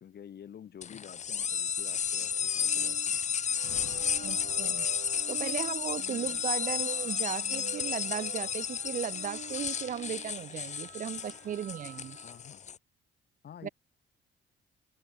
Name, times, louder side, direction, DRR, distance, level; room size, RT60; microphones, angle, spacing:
voice 1, 0.0-3.2 6.0-6.4 12.2-12.7 13.4-13.7, left 9 dB, 55° left, 1.5 m, -49 dB
sound 1, 0.8-12.8, left 7 dB, 35° left, 0.6 m, -33 dB
sound 2, 2.2-12.5, right 9 dB, 60° right, 1.8 m, -48 dB
sound 3, 3.6-5.6, left 13 dB, 80° left, 1.8 m, -50 dB
voice 2, 4.2-4.9 5.3-12.2 13.6-13.7, right 9 dB, 45° right, 0.4 m, -36 dB
cardioid pair, 90°, 20 cm